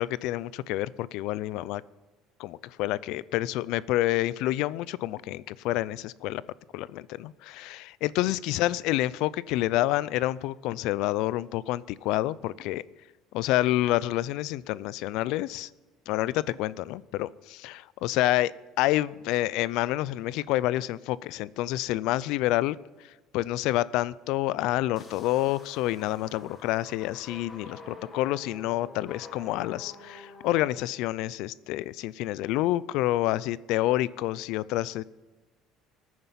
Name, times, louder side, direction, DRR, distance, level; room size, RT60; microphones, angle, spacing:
voice 1, 0.0-1.8 2.4-6.4 6.7-12.8 13.3-15.7 16.1-18.5 18.8-35.0, left 16 dB, 65° left, 21 dB, 0.4 m, -28 dB
sound 1, 25.0-30.7, left 2 dB, 20° left, 1.9 m, -48 dB
19.0 x 9.5 x 5.8 m, 1.2 s
cardioid pair, 150°, 0 cm